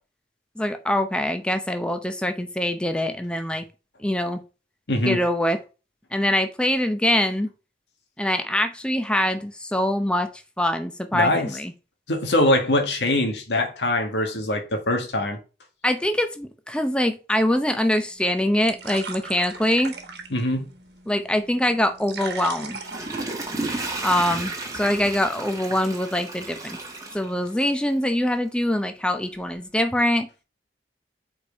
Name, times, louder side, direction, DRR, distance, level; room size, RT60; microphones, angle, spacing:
voice 1, 0.6-3.7 4.0-4.4 5.0-5.6 6.1-7.5 8.2-10.3 10.6-11.7 15.8-19.9 21.1-22.8 24.0-26.8 27.1-30.3, left 1 dB, 5° left, 0.7 m, -24 dB
voice 2, 4.9-5.2 11.1-11.5 12.1-15.4 20.3-20.7, left 1 dB, 85° left, 1.7 m, -23 dB
sound 1, 18.1-24.1, right 4 dB, 75° right, 1.3 m, -39 dB
Water / Toilet flush, 22.6-27.9 28.4-28.5, right 2 dB, 20° right, 1.4 m, -33 dB
5.2 x 4.5 x 5.1 m
head